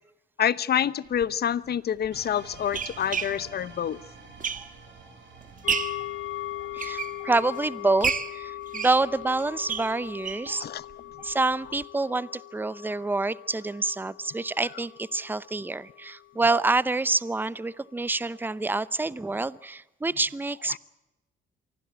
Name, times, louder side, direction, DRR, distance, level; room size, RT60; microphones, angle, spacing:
voice 1, 0.4-4.0 10.6-10.8, left 9 dB, 55° left, 18 dB, 0.9 m, -27 dB
sound 1, 1.1-1.3 2.0-5.0 5.4-6.1 6.6-7.6 8.0-10.5 10.9-11.0 11.3-11.4 11.7-11.8, right 6 dB, 40° right, 1.6 m, -32 dB
sound 2, 2.1-8.0, right 4 dB, 70° right, 5.9 m, -49 dB
sound 3, 5.6-17.3 17.7-17.8, left 14 dB, 75° left, 1.3 m, -40 dB
voice 2, 6.7-10.7 11.2-20.8, right 3 dB, 10° right, 19 dB, 0.7 m, -27 dB
24.5 x 15.5 x 8.2 m, 1.0 s
cardioid pair, 90°, 20 cm